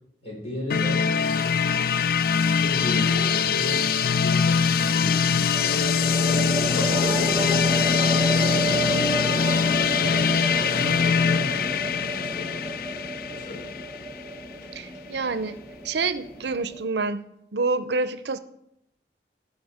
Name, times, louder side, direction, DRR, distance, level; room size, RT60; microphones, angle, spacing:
voice 1, 0.2-1.1 1.4-1.7 2.6-6.2 6.6-9.4 9.8-12.6 13.3-13.7, left 1 dB, 35° left, -3 dB, 5.2 m, -37 dB
sound 1, 0.7-14.4, left 6 dB, 55° left, 0.4 m, -23 dB
sound 2, 2.4-3.0 5.5-16.9, right 1 dB, ahead, 1.1 m, -31 dB
sound 3, 2.5-16.7, left 2 dB, 90° left, 2.6 m, -41 dB
voice 2, 14.7-17.2 17.5-18.4, right 3 dB, 70° right, 13 dB, 0.6 m, -27 dB
16.0 x 6.3 x 5.0 m, 0.79 s
head